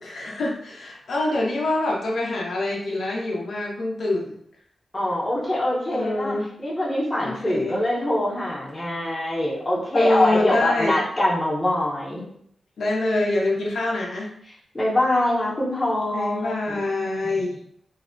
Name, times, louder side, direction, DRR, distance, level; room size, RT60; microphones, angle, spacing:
voice 1, 0.0-4.4 5.9-6.5 7.2-7.8 9.9-11.0 12.8-14.3 16.1-17.6, left 2 dB, 75° left, -3 dB, 0.5 m, -25 dB
voice 2, 4.9-12.2 14.7-16.8, left 1 dB, 20° left, -6 dB, 0.7 m, -24 dB
2.6 x 2.0 x 2.5 m, 0.68 s
wide cardioid pair, 150°, 0 cm